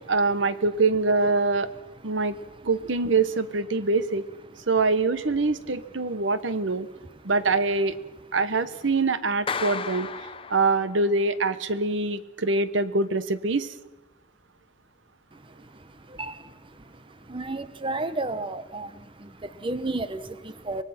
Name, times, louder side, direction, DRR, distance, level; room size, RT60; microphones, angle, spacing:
voice 1, 0.1-1.7 2.0-2.4 2.6-4.2 4.7-6.9 7.2-7.9 8.3-10.1 10.5-13.7, right 3 dB, 75° right, 13 dB, 1.2 m, -24 dB
voice 2, 1.7-2.7 3.7-3.8 4.5-4.6 5.5-7.3 15.3-20.8, right 2 dB, 25° right, 12 dB, 0.9 m, -35 dB
Clapping, 9.5-11.2, left 5 dB, 30° left, 0.8 m, -33 dB
24.5 x 20.5 x 5.9 m, 1.1 s
head